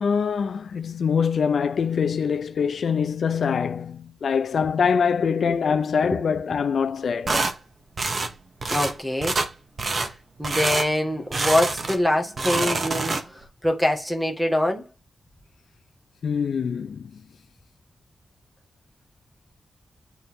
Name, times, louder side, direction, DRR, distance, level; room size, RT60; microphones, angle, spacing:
voice 1, 0.0-7.4 16.2-17.1, left 6 dB, 75° left, 0.6 m, -24 dB
sound 1, 7.3-7.5 8.0-8.3 8.6-8.9 9.2-9.5 9.8-10.1 10.4-10.9 11.3-12.0 12.3-13.4, right 3 dB, 45° right, 1.5 m, -26 dB
voice 2, 8.7-9.4 9.9-10.1 10.4-14.9, left 1 dB, ahead, 1.9 m, -24 dB
8.6 x 3.9 x 3.7 m
wide cardioid pair, 95°, 0 cm